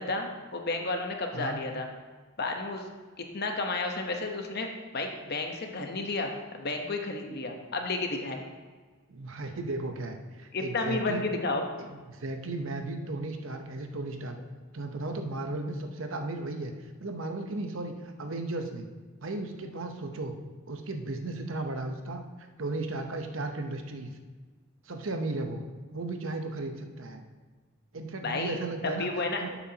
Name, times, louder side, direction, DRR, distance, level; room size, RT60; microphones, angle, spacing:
voice 1, 0.0-1.9 2.4-2.8 3.3-8.4 10.5-11.6 28.2-28.6 28.8-29.4, left 3 dB, 50° left, 3 dB, 1.0 m, -32 dB
voice 2, 9.1-11.3 11.8-14.4 14.7-16.7 17.0-18.9 19.2-20.4 20.7-24.2 24.8-25.6 25.9-27.2 27.9-29.6, right 2 dB, 70° right, 5 dB, 0.9 m, -35 dB
11.5 x 8.1 x 2.9 m, 1.4 s
head